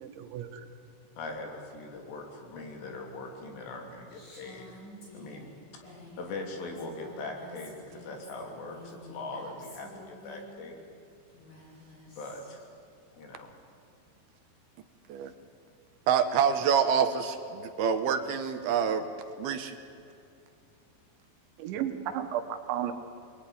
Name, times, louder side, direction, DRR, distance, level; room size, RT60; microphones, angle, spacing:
voice 1, 0.0-0.7 21.6-22.9, right 10 dB, 90° right, 7 dB, 3.7 m, -33 dB
voice 2, 1.2-4.8 5.1-5.8 6.2-10.8 12.2-12.6 13.1-13.5, left 2 dB, 70° left, 2 dB, 5.1 m, -41 dB
Female speech woman speaking, 4.1-10.5 11.3-12.7, left 1 dB, 55° left, 9.4 m, -50 dB
voice 3, 16.1-19.1 19.4-19.8, right 7 dB, 70° right, 8 dB, 2.7 m, -26 dB
25.5 x 20.5 x 10.0 m, 2.5 s
omnidirectional pair, 5.1 m